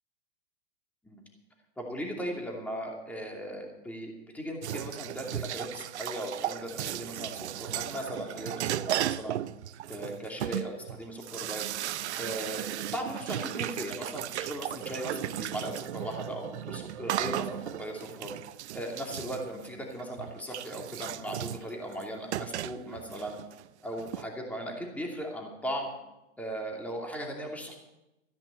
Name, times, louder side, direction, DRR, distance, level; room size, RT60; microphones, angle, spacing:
voice 1, 1.8-9.4 9.9-11.6 12.1-12.7 12.9-18.3 18.7-23.4 23.8-25.9 26.4-27.7, equal, 5° left, 0 dB, 2.7 m, -38 dB
sound 1, 4.6-24.2, right 12 dB, 70° right, 0.7 m, -36 dB
14.5 x 10.5 x 6.9 m, 0.95 s
hypercardioid pair, 135°, 35 cm